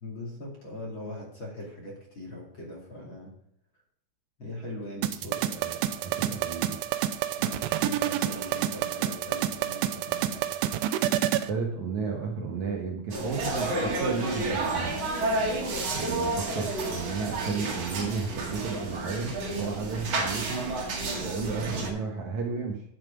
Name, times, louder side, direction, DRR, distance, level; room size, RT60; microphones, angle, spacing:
voice 1, 0.0-3.3 4.4-5.5 7.4-10.5, left 1 dB, 35° left, -3 dB, 2.4 m, -40 dB
sound 1, 5.0-11.5, right 12 dB, 90° right, 2.8 m, -28 dB
voice 2, 5.5-6.8 11.5-15.0 15.9-20.7 21.2-22.8, right 5 dB, 65° right, 0 dB, 2.1 m, -33 dB
sound 2, 13.1-21.9, right 2 dB, 50° right, 2.5 m, -30 dB
11.0 x 7.5 x 5.1 m, 0.76 s
omnidirectional pair, 4.6 m